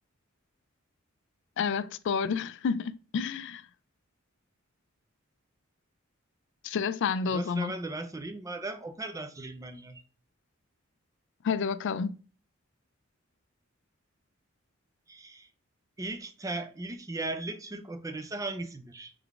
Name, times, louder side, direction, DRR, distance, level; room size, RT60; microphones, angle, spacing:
voice 1, 1.6-3.6 6.6-7.7 11.4-12.2, left 5 dB, 60° left, 0.3 m, -30 dB
voice 2, 7.2-10.0 15.1-15.5 16.0-19.1, right 2 dB, 15° right, 0.4 m, -37 dB
3.8 x 3.4 x 3.4 m
head